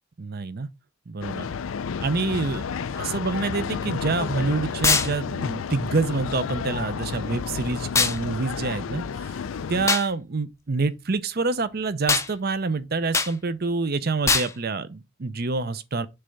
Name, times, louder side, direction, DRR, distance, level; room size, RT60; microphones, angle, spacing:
voice 1, 0.2-0.7 1.1-1.5 2.0-2.7 2.9-9.3 9.7-16.1, right 3 dB, 50° right, 0.6 m, -27 dB
sound 1, 1.2-9.9, left 6 dB, 85° left, 0.4 m, -31 dB
sound 2, 4.8-5.1 7.9-8.2 9.9-10.1 12.1-12.3 13.1-13.3 14.3-14.5, left 4 dB, 15° left, 0.5 m, -21 dB
6.8 x 3.4 x 5.3 m
head